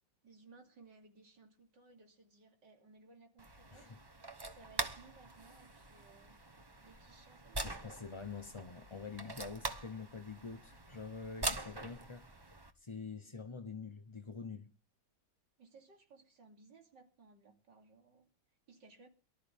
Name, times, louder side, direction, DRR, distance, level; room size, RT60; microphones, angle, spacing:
voice 1, 0.2-4.0 4.5-6.4 6.8-7.8 15.6-18.3 18.7-19.1, right 4 dB, 65° right, 3.4 m, -61 dB
sound 1, 3.4-12.7, right 2 dB, 25° right, 0.5 m, -44 dB
voice 2, 7.6-12.3 12.8-14.7, left 5 dB, 40° left, 0.4 m, -46 dB
23.0 x 13.0 x 3.5 m
omnidirectional pair, 2.1 m